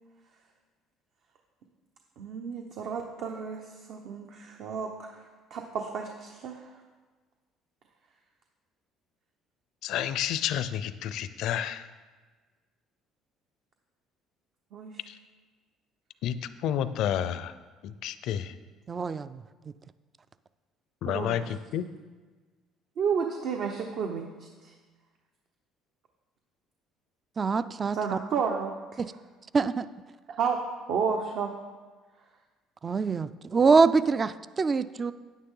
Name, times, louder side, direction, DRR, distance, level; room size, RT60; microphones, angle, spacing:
voice 1, 2.2-3.6 3.9-5.1 5.5-6.6 14.7-14.9 21.1-21.4 23.0-24.3 24.6-24.7 27.9-29.0 30.4-30.6 30.9-31.5, right 6 dB, 65° right, 3 dB, 0.9 m, -31 dB
voice 2, 9.8-11.9 15.1-15.2 16.2-17.5 17.8-18.5 21.0-21.8, left 10 dB, 70° left, 14 dB, 0.5 m, -30 dB
voice 3, 18.9-19.4 27.4-28.2 29.0-29.1 29.5-29.9 32.8-35.1, right 4 dB, 30° right, 15 dB, 0.3 m, -24 dB
9.3 x 9.2 x 3.8 m, 1.3 s
supercardioid pair, 90°, 0 cm